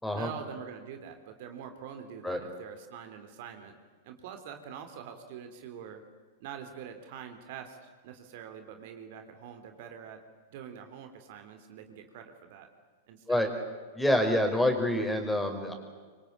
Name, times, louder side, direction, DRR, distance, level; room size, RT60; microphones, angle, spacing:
voice 1, 0.1-3.7 4.0-6.0 6.4-7.8 8.0-10.2 10.5-12.7 13.1-13.4, right 8 dB, 55° right, 7 dB, 3.5 m, -45 dB
voice 2, 13.9-15.7, left 1 dB, 5° left, 5 dB, 5.4 m, -27 dB
26.0 x 25.0 x 8.8 m, 1.5 s
figure-of-eight pair, 95°, 0 cm